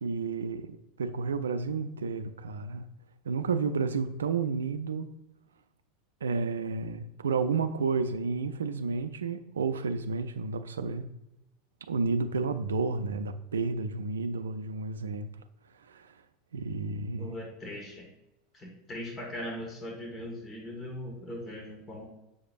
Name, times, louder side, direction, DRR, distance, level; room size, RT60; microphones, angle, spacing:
voice 1, 0.0-2.9 3.2-5.1 6.2-11.1 11.9-15.3 15.9-16.1 16.5-17.3, right 4 dB, 80° right, 0.4 m, -31 dB
voice 2, 17.2-18.1 18.5-22.0, left 1 dB, 25° left, 1.7 m, -40 dB
7.0 x 6.6 x 2.5 m
figure-of-eight pair, 80°, 0 cm